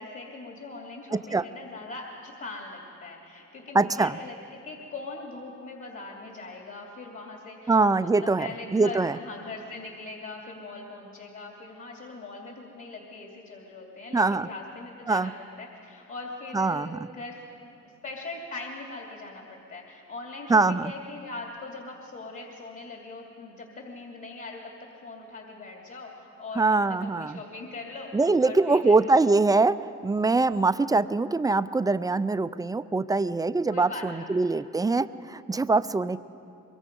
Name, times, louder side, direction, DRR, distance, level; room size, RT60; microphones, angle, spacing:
voice 1, 0.0-15.3 15.6-17.4 18.0-29.0 33.7-34.3, left 3 dB, 45° left, 0 dB, 2.8 m, -41 dB
voice 2, 1.1-1.5 3.7-4.2 7.7-9.2 14.1-14.5 15.1-15.3 16.5-17.0 20.5-20.9 26.6-27.4 28.1-29.8 30.0-36.2, right 3 dB, 10° right, 14 dB, 0.4 m, -23 dB
23.5 x 22.5 x 5.4 m, 2.7 s
cardioid pair, 90°, 30 cm